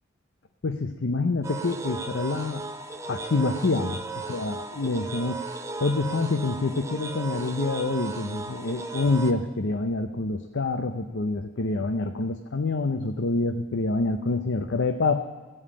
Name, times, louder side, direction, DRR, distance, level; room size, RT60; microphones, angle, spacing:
voice 1, 0.6-2.7 3.1-5.4 5.8-15.2, left 3 dB, 65° left, 6 dB, 0.7 m, -27 dB
sound 1, 1.4-9.3, right 3 dB, 15° right, 0.7 m, -36 dB
15.5 x 5.6 x 8.4 m, 1.2 s
head